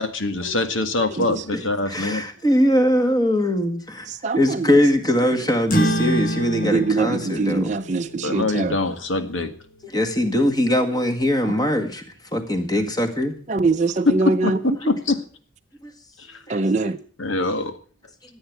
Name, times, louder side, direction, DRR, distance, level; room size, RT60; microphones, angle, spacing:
voice 1, 0.0-2.2 8.2-9.5 14.1-15.2 17.2-17.8, left 2 dB, 90° left, 1.9 m, -23 dB
voice 2, 1.9-4.1 4.4-7.7 9.8-12.0 12.3-13.4 14.8-14.9 15.8-15.9 16.5-17.0, equal, 20° left, 1.8 m, -21 dB
sound 1, 5.7-10.6, equal, 45° left, 1.8 m, -28 dB
voice 3, 6.6-8.8 13.5-14.6 16.5-17.0, right 3 dB, 40° right, 0.6 m, -22 dB
14.5 x 8.6 x 8.1 m
head